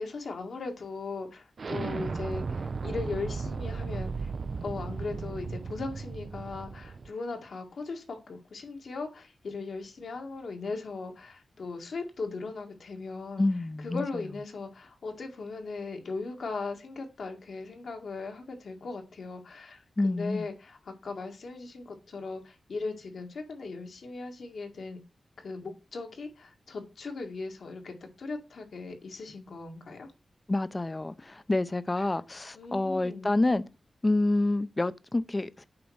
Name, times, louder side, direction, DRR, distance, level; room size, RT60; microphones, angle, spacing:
voice 1, 0.0-4.3 4.6-13.4 13.8-25.0 25.4-30.1 32.5-33.4, left 3 dB, 75° left, 1.9 m, -38 dB
Explosion, 1.6-7.1, right 4 dB, 60° right, 0.4 m, -35 dB
voice 2, 13.4-14.0 20.0-20.5 30.5-33.6 34.0-35.7, left 2 dB, 30° left, 0.6 m, -28 dB
8.6 x 3.0 x 6.3 m
cardioid pair, 65°, 0 cm